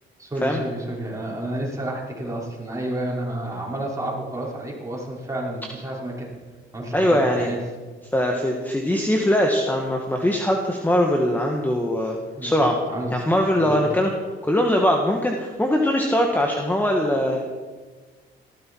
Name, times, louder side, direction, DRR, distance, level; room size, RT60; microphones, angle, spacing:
voice 1, 0.2-6.3 6.7-7.6 12.4-12.6 12.9-13.9, right 1 dB, 15° right, -4 dB, 5.8 m, -30 dB
voice 2, 6.9-7.5 8.1-12.2 12.4-12.8 13.1-14.1 14.4-17.4, equal, 10° left, 1 dB, 1.8 m, -21 dB
18.5 x 14.5 x 4.8 m, 1.4 s
cardioid pair, 90°, 20 cm